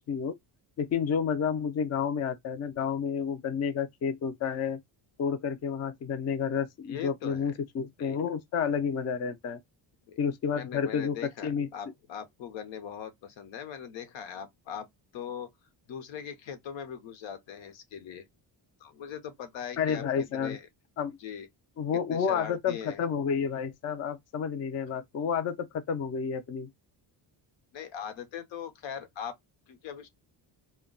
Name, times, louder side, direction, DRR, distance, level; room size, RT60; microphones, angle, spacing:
voice 1, 0.8-4.8 5.2-9.6 10.2-11.2 11.4-11.7 19.8-20.6 21.0-21.2 21.8-26.7, left 7 dB, 35° left, 0.4 m, -30 dB
voice 2, 6.8-7.5 8.0-8.2 10.1-10.2 10.5-14.9 15.1-15.5 15.9-18.3 18.8-20.0 20.3-20.6 21.2-21.5 22.1-23.0 27.7-29.3 29.7-30.1, left 8 dB, 80° left, 0.8 m, -40 dB
2.2 x 2.2 x 3.6 m
cardioid pair, 140°, 45 cm